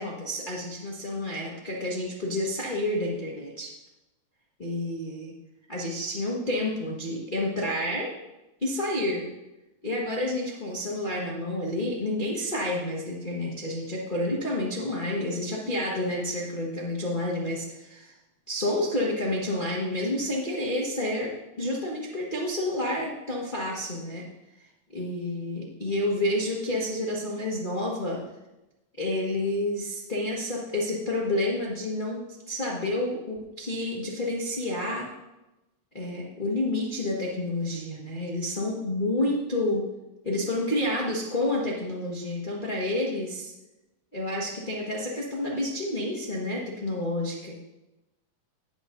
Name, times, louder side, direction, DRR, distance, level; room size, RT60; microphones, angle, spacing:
voice 1, 0.0-3.7 4.6-5.3 5.7-8.1 8.6-9.3 9.8-18.1 18.5-24.2 24.9-28.2 29.0-35.1 35.9-39.8 40.2-43.5 44.1-47.6, left 1 dB, 70° left, -5 dB, 0.4 m, -29 dB
16.5 x 8.7 x 2.6 m, 1.0 s
omnidirectional pair, 3.8 m